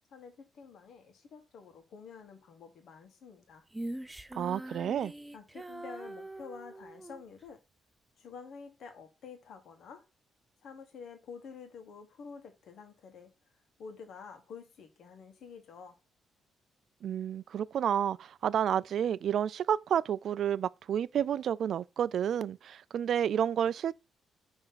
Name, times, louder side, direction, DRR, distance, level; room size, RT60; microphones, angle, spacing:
voice 1, 0.1-3.6 5.3-7.6 8.2-10.0 10.6-13.3 13.8-16.0, left 5 dB, 70° left, 1.7 m, -49 dB
Female singing, 3.7-7.2, right 1 dB, 10° right, 0.6 m, -43 dB
voice 2, 4.3-5.1 17.0-23.9, right 9 dB, 65° right, 0.3 m, -30 dB
5.7 x 3.5 x 5.8 m
cardioid pair, 90°, 0 cm